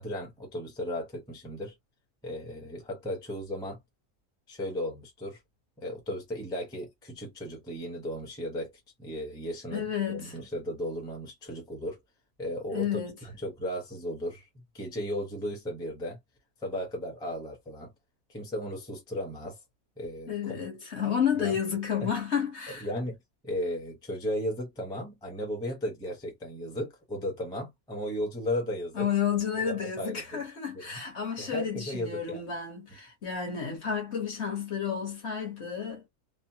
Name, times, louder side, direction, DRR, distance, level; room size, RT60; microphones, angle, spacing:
voice 1, 0.0-1.7 2.2-3.8 4.5-5.4 5.8-12.0 12.4-12.9 13.2-14.5 14.7-16.2 16.6-17.9 18.3-19.6 20.0-20.6 21.4-21.6 22.0-22.1 22.8-23.2 23.4-29.1 29.7-30.4 30.9-31.0 31.4-32.4, equal, 5° left, 0.6 m, -35 dB
voice 2, 9.7-10.3 12.7-13.1 20.3-22.9 28.9-36.0, left 8 dB, 50° left, 1.2 m, -31 dB
3.0 x 2.0 x 2.8 m
omnidirectional pair, 1.6 m